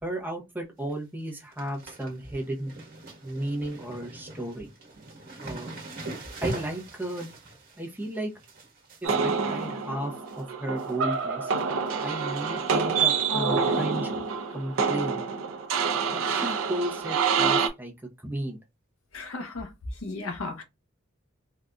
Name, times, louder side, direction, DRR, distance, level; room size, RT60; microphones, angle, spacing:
voice 1, 0.0-2.7 3.2-4.7 5.4-5.7 6.4-7.3 7.8-8.3 9.0-11.5 12.0-14.2 14.5-15.2 16.1-17.9 18.2-18.6, right 1 dB, 10° right, 0.7 m, -34 dB
sound 1, 0.6-0.9 1.2-10.4 10.8-11.2 11.5-12.3 12.7-12.8 13.7-14.0 14.3-14.4 14.7-14.8 16.4-16.5 17.3-17.4, right 1 dB, 45° right, 1.2 m, -42 dB
sound 2, 9.0-17.7, right 5 dB, 75° right, 0.5 m, -27 dB
voice 2, 19.1-19.7 20.0-20.6, left 3 dB, 80° left, 0.8 m, -35 dB
3.6 x 2.5 x 2.2 m
head